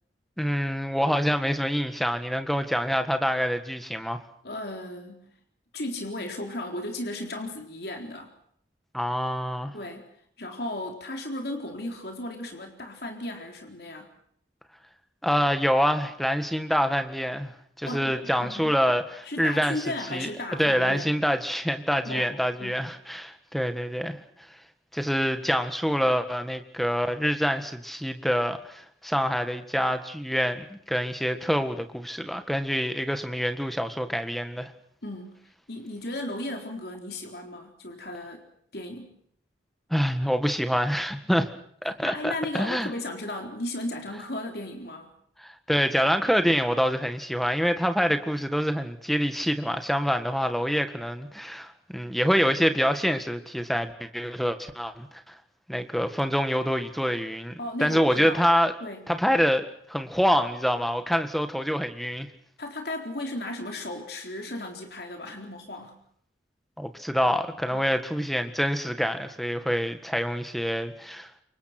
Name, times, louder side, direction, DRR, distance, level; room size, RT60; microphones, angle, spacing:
voice 1, 0.4-4.2 8.9-9.7 15.2-17.5 17.8-19.8 20.1-20.3 20.6-24.2 24.9-34.7 39.9-41.5 41.8-42.9 45.4-55.4 55.7-58.7 59.1-62.3 66.8-71.3, equal, ahead, 8 dB, 1.7 m, -26 dB
voice 2, 4.4-5.3 5.7-8.3 9.7-10.1 10.4-14.1 17.9-18.8 19.2-21.2 22.0-22.3 22.6-22.9 35.0-35.3 35.7-38.5 38.7-39.2 41.8-45.1 57.6-58.4 58.8-59.0 62.6-66.0 67.7-67.9, left 1 dB, 60° left, 3 dB, 4.0 m, -35 dB
28.0 x 24.0 x 6.1 m, 0.66 s
head